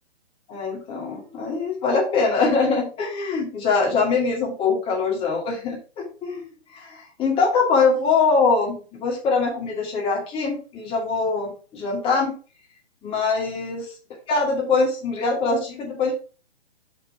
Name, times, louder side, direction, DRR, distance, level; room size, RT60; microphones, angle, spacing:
voice 1, 0.5-6.4 6.7-12.3 13.0-13.9 14.3-16.1, left 4 dB, 15° left, -2 dB, 2.6 m, -23 dB
6.1 x 5.5 x 5.0 m, 0.37 s
figure-of-eight pair, 130°, 33 cm